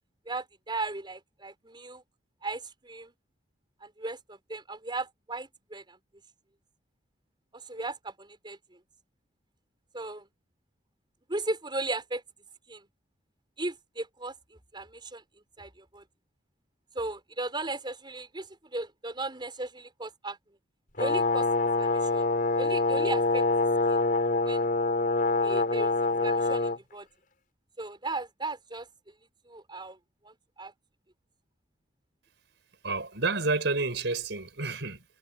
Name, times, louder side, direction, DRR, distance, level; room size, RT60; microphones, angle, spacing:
voice 1, 0.3-2.0 2.4-3.1 3.8-6.0 7.7-8.6 9.9-10.3 11.3-12.2 12.7-12.9 13.6-14.3 14.7-15.2 15.6-16.0 16.9-20.4 21.0-21.5 21.8-22.3 22.6-23.5 23.9-24.0 24.4-24.7 25.4-25.9 26.2-27.1 27.8-28.9 29.5-30.0 30.2-30.7, right 2 dB, 25° right, 4.8 m, -36 dB
Brass instrument, 21.0-26.8, left 3 dB, 50° left, 4.8 m, -25 dB
voice 2, 32.8-35.0, right 3 dB, 70° right, 5.2 m, -29 dB
head